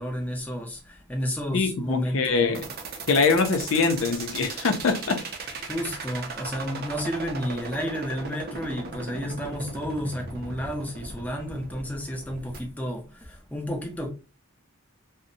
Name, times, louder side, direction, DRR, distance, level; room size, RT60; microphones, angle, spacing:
voice 1, 0.0-2.6 5.7-14.1, equal, 10° left, 0.5 m, -31 dB
voice 2, 1.5-2.6 3.1-5.2, left 4 dB, 75° left, 0.4 m, -23 dB
sound 1, 2.5-12.6, right 4 dB, 50° right, 0.5 m, -37 dB
2.6 x 2.0 x 2.5 m
head